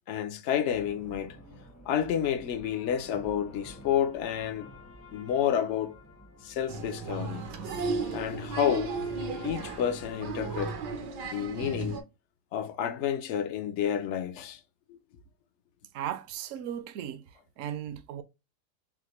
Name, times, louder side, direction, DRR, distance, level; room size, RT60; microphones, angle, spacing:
voice 1, 0.1-1.4 1.9-4.7 5.1-6.0 6.4-7.4 8.1-9.0 9.4-10.8 11.2-12.0 12.5-14.6 14.9-15.0, left 9 dB, 70° left, 0.7 m, -30 dB
sound 1, 0.7-11.1, equal, 20° left, 0.4 m, -52 dB
sound 2, 2.6-10.6, left 7 dB, 90° left, 1.5 m, -55 dB
Applause, 6.7-12.0, right 4 dB, 85° right, 1.5 m, -35 dB
voice 2, 15.9-17.2 17.6-18.2, right 10 dB, 65° right, 0.8 m, -36 dB
5.8 x 2.1 x 3.0 m
omnidirectional pair, 1.8 m